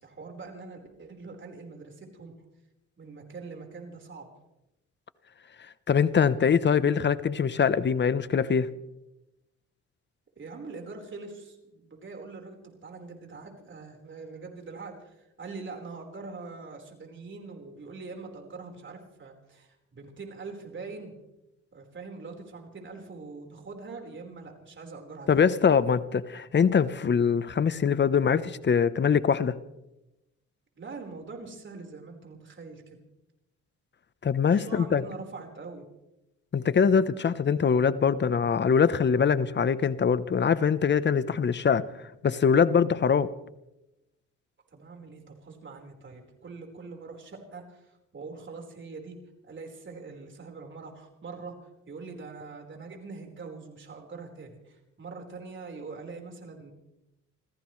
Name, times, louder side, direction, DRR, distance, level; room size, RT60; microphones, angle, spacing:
voice 1, 0.0-2.3 3.0-4.3 10.4-21.1 21.7-25.4 30.8-33.0 34.5-35.8 44.7-49.2 49.4-56.7, right 4 dB, 40° right, 2 dB, 4.6 m, -43 dB
voice 2, 5.9-8.7 25.3-29.6 34.2-35.0 36.5-41.9 42.2-43.3, left 6 dB, 35° left, 15 dB, 0.9 m, -23 dB
28.0 x 15.5 x 3.3 m, 0.92 s
cardioid pair, 90°, 30 cm